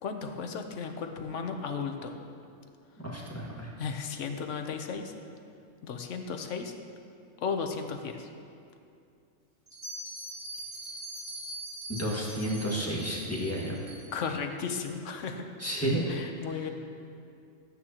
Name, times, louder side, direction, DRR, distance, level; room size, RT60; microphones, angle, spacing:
voice 1, 0.0-2.2 3.8-5.1 5.8-6.7 7.4-8.3 14.1-15.5 16.1-16.7, left 5 dB, 65° left, 5 dB, 1.1 m, -35 dB
voice 2, 3.0-3.7 11.9-13.8 15.6-16.0, equal, 10° left, -5 dB, 1.6 m, -31 dB
Bell, 9.7-14.3, right 1 dB, 25° right, 2.3 m, -42 dB
14.0 x 9.4 x 2.9 m, 2.5 s
omnidirectional pair, 1.4 m